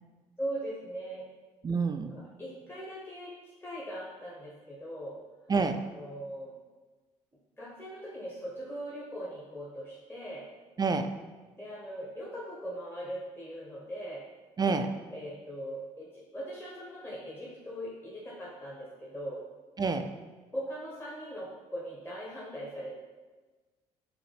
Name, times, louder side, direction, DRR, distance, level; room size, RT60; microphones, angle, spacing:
voice 1, 0.4-1.3 2.1-5.2 5.9-6.5 7.6-10.5 11.6-14.2 15.1-19.4 20.5-23.0, equal, 15° left, -5 dB, 1.0 m, -40 dB
voice 2, 1.6-2.1 5.5-5.8 10.8-11.1 14.6-14.9 19.8-20.1, right 4 dB, 25° right, 7 dB, 0.3 m, -28 dB
5.0 x 2.9 x 3.3 m, 1.3 s
hypercardioid pair, 60°, 16 cm